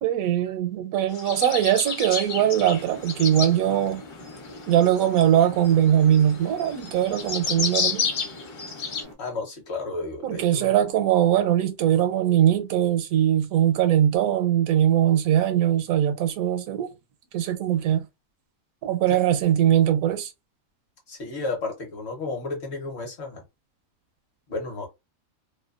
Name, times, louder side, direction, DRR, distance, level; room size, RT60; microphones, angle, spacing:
voice 1, 0.0-4.0 4.7-8.1 10.2-16.9 17.3-18.0 18.8-20.3, right 11 dB, 80° right, 1.0 m, -21 dB
sound 1, 1.1-3.5 4.3-9.0, left 5 dB, 70° left, 0.9 m, -30 dB
sound 2, 2.2-9.1, left 1 dB, 40° left, 0.3 m, -43 dB
voice 2, 9.2-10.8 19.1-19.2 21.1-23.4 24.5-24.9, left 3 dB, 55° left, 1.1 m, -32 dB
2.6 x 2.1 x 2.3 m
omnidirectional pair, 1.4 m